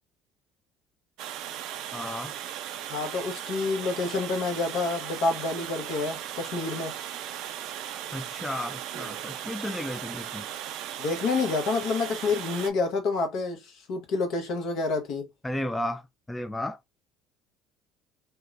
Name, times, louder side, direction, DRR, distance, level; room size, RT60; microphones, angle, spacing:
Water, 1.2-12.7, right 11 dB, 65° right, 0.3 m, -37 dB
voice 1, 1.9-2.3 8.1-10.5 15.4-16.8, left 1 dB, 10° left, 0.4 m, -33 dB
voice 2, 2.9-6.9 11.0-15.3, left 3 dB, 60° left, 0.9 m, -28 dB
2.8 x 2.2 x 2.4 m
hypercardioid pair, 60°, 0 cm